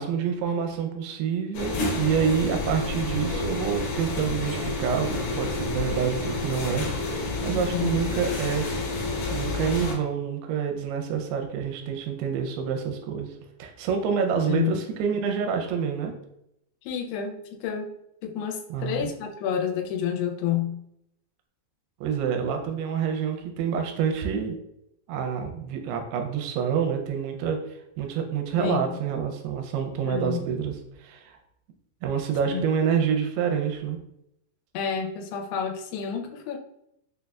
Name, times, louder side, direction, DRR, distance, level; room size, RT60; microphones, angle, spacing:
voice 1, 0.0-6.9 7.1-8.7 9.3-13.3 13.6-16.1 18.7-19.1 22.0-24.6 25.1-27.6 28.0-30.7 31.0-31.4 32.0-34.0, right 7 dB, 85° right, 4 dB, 2.6 m, -27 dB
sound 1, 1.5-9.9, left 2 dB, 70° left, 2.3 m, -29 dB
voice 2, 7.4-7.9 14.5-14.8 16.9-17.9 18.2-20.8 28.6-28.9 30.1-30.5 32.5-32.7 34.7-36.6, left 8 dB, 90° left, 2 dB, 2.6 m, -29 dB
6.3 x 2.2 x 2.3 m, 0.78 s
omnidirectional pair, 4.5 m